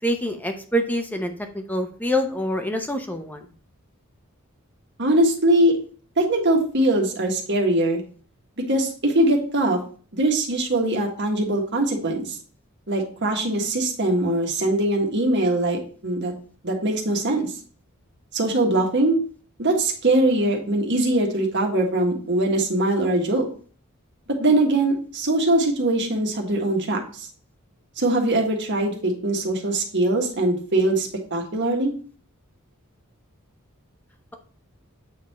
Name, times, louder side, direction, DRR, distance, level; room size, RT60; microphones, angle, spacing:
voice 1, 0.0-3.4, equal, 10° left, 5 dB, 0.7 m, -26 dB
voice 2, 5.0-5.7 6.2-8.0 8.7-9.8 10.1-12.4 12.9-16.3 16.6-17.5 18.3-19.2 19.6-23.5 24.4-27.3 28.0-31.9, right 1 dB, 55° right, 1 dB, 1.6 m, -22 dB
8.4 x 3.7 x 4.2 m, 0.42 s
head